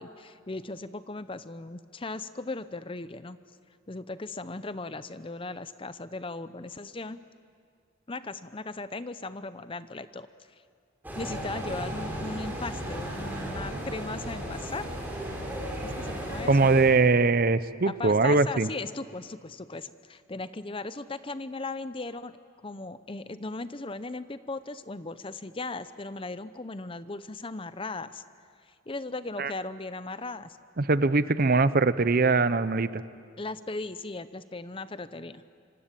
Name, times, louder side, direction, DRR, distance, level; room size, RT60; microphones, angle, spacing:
voice 1, 0.0-3.4 3.9-7.2 8.1-10.3 11.1-14.9 15.8-16.8 17.8-22.4 22.6-28.2 28.7-30.6 33.4-35.4, left 3 dB, 25° left, 13 dB, 0.6 m, -37 dB
sound 1, 11.0-16.8, right 1 dB, 10° right, 5.0 m, -35 dB
voice 2, 16.5-18.7 29.4-29.5 30.8-33.0, right 3 dB, 45° right, 14 dB, 0.7 m, -22 dB
25.5 x 25.5 x 9.0 m, 2.2 s
head